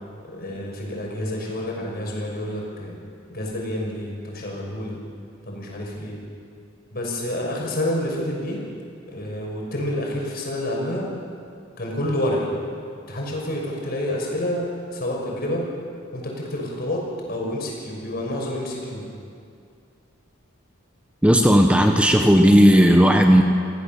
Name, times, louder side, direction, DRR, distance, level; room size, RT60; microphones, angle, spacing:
voice 1, 0.3-3.0 3.3-5.0 5.5-6.2 6.9-8.6 9.1-11.1 11.8-12.5 13.1-15.7 16.1-19.1, left 1 dB, 50° left, -1 dB, 6.2 m, -28 dB
voice 2, 21.2-23.4, equal, 5° right, 3 dB, 1.1 m, -14 dB
28.0 x 17.0 x 7.3 m, 2.3 s
head